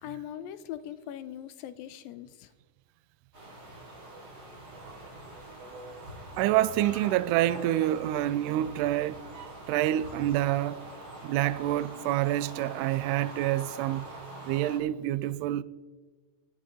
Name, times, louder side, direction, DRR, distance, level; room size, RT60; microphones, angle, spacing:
voice 1, 0.0-2.5, left 11 dB, 85° left, 2.4 m, -41 dB
sound 1, 3.3-14.8, right 1 dB, 25° right, 3.6 m, -45 dB
sound 2, 4.0-9.7, right 2 dB, 65° right, 1.6 m, -49 dB
voice 2, 6.4-9.2 9.7-10.8 11.2-14.1 14.4-15.6, right 14 dB, 90° right, 1.7 m, -27 dB
22.5 x 9.9 x 3.6 m
omnidirectional pair, 4.1 m